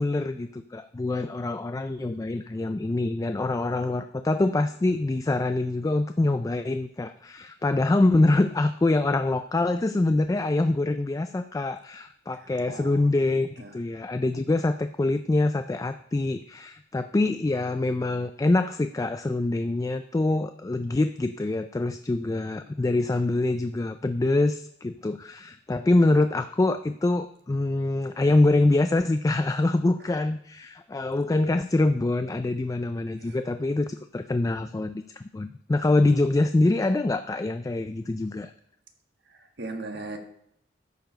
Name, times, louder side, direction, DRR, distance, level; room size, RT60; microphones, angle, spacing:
voice 1, 0.0-38.5, left 2 dB, 20° left, 10 dB, 0.3 m, -25 dB
voice 2, 12.3-13.8 22.8-22.9 33.2-33.4 39.3-40.2, right 2 dB, 65° right, 4 dB, 1.5 m, -40 dB
13.0 x 4.7 x 5.1 m, 0.72 s
head